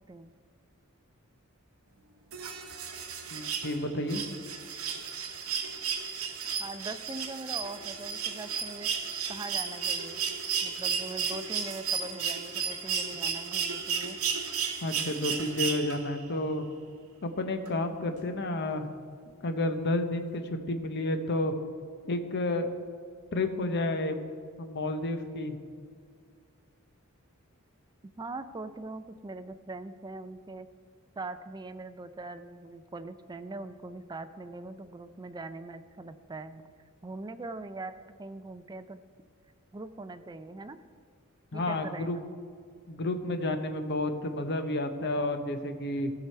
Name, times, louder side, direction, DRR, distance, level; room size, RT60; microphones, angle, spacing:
sound 1, 2.3-16.2 17.6-17.7, right 6 dB, 75° right, 1.0 m, -33 dB
voice 1, 3.3-4.3 14.8-16.7 17.2-18.9 19.4-21.5 22.1-22.7 23.3-24.2 24.6-25.6 41.5-42.2 42.9-46.1, left 2 dB, 55° left, 7 dB, 0.8 m, -31 dB
voice 2, 6.6-10.2 10.6-14.2 28.0-30.7 31.2-36.6 37.0-39.0 39.7-40.8 41.5-42.3, right 3 dB, 20° right, 10 dB, 0.4 m, -42 dB
15.0 x 6.0 x 4.5 m, 2.1 s
head